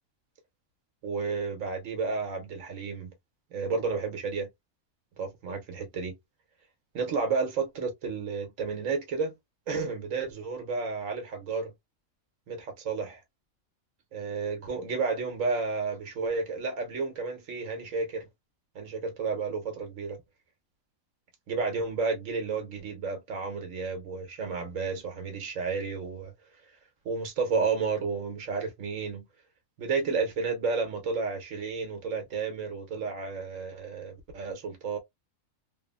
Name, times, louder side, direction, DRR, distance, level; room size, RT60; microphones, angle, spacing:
voice 1, 1.0-3.1 3.5-4.5 5.2-6.2 6.9-9.3 9.7-11.7 12.5-13.2 14.1-18.3 18.7-20.2 21.5-26.3 27.0-29.2 29.8-35.0, right 4 dB, 70° right, 1.3 m, -31 dB
3.2 x 2.1 x 2.2 m
omnidirectional pair, 1.4 m